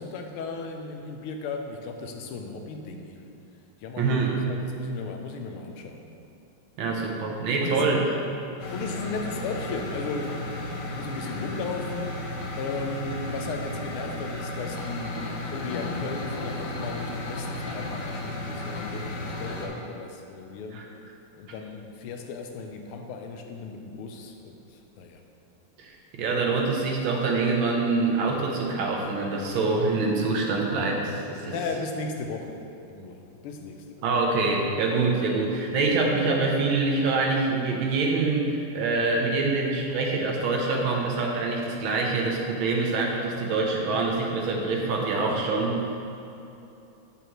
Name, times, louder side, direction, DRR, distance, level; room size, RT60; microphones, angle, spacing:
voice 1, 0.0-3.3 3.8-4.2 4.5-6.1 7.6-7.9 8.7-12.2 12.6-20.9 21.3-25.2 31.4-34.1, left 4 dB, 90° left, 4 dB, 1.6 m, -36 dB
voice 2, 4.0-4.4 6.8-8.0 20.7-20.9 25.8-31.5 34.0-45.8, right 3 dB, 70° right, 0 dB, 1.6 m, -25 dB
sound 1, 8.6-19.7, left 1 dB, 60° left, 1.4 m, -34 dB
8.5 x 7.4 x 3.0 m, 2.8 s
omnidirectional pair, 2.3 m